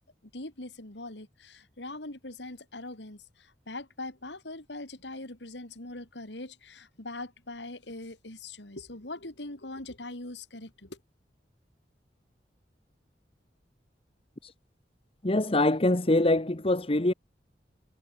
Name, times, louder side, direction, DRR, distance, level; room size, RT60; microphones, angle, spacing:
voice 1, 0.3-11.0, left 2 dB, 80° left, 4.0 m, -42 dB
voice 2, 15.2-17.1, left 1 dB, 30° left, 1.2 m, -24 dB
head